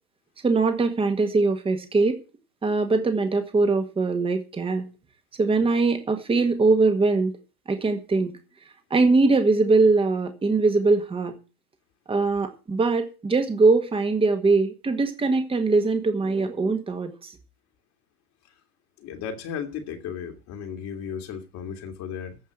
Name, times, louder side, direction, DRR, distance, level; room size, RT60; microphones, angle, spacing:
voice 1, 0.4-2.2 2.6-4.9 5.4-7.3 7.7-8.4 8.9-11.3 12.1-17.3, right 3 dB, 10° right, 1.8 m, -22 dB
voice 2, 19.0-22.4, left 7 dB, 35° left, 2.3 m, -35 dB
15.0 x 5.5 x 8.0 m
hypercardioid pair, 110°, 46 cm